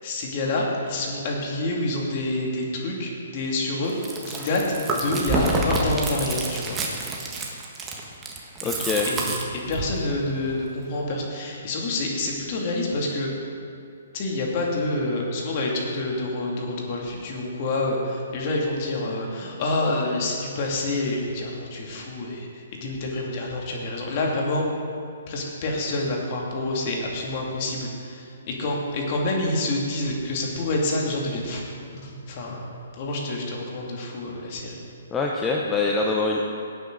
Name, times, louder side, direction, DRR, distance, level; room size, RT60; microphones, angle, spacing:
voice 1, 0.0-3.9 4.3-4.6 4.9-6.8 8.6-8.7 9.1-9.2 9.7-13.3 14.1-24.6 25.3-31.7 32.0-34.8, left 2 dB, 40° left, -2 dB, 2.6 m, -27 dB
Chewing mastication, 3.9-10.0, right 2 dB, 15° right, 1.5 m, -28 dB
voice 2, 8.6-9.4 35.1-36.4, left 3 dB, 15° left, -1 dB, 0.8 m, -24 dB
17.0 x 9.1 x 4.0 m, 2.5 s
hypercardioid pair, 150°, 0 cm